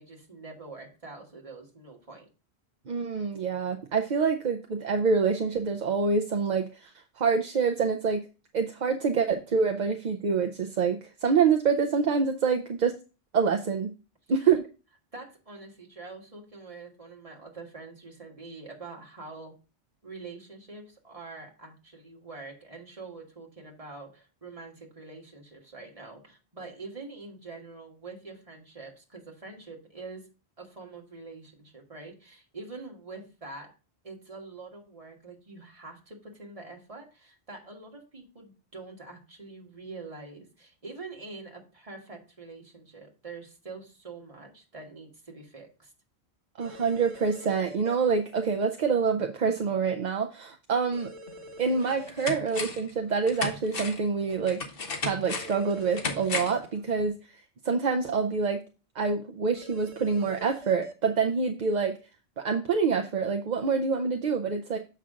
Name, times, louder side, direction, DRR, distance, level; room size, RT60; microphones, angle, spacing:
voice 1, 0.0-2.3 14.4-14.5 15.1-19.5 20.0-30.3 30.6-33.7 34.0-45.9, right 3 dB, 30° right, 0 dB, 1.7 m, -45 dB
voice 2, 2.9-6.9 7.2-8.2 8.5-12.9 13.3-13.9 14.3-14.6 46.6-51.1 51.6-54.6 55.0-57.1 57.6-58.6 59.0-61.9 62.4-64.8, right 5 dB, 50° right, 4 dB, 0.7 m, -26 dB
sound 1, 46.6-48.0 50.9-52.3 55.2-56.6 59.6-60.9, equal, 90° right, 1.2 m, -45 dB
sound 2, 51.3-51.4 51.8-52.9 53.3-56.7 57.0-57.1, left 4 dB, 55° left, 1.3 m, -34 dB
7.3 x 5.7 x 3.6 m, 0.32 s
omnidirectional pair, 1.1 m